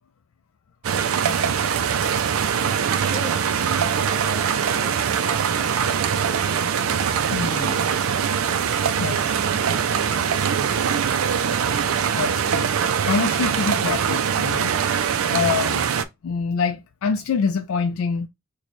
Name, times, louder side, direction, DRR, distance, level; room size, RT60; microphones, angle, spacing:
sound 1, 0.8-16.0, right 7 dB, 80° right, 0.4 m, -22 dB
voice 1, 3.1-6.7 9.0-10.7, left 1 dB, 45° left, 1.3 m, -42 dB
voice 2, 7.3-7.8 9.0-9.3 12.1-12.7 13.1-14.7 15.3-15.8 16.2-18.3, left 5 dB, 75° left, 0.4 m, -25 dB
3.1 x 2.2 x 4.0 m
head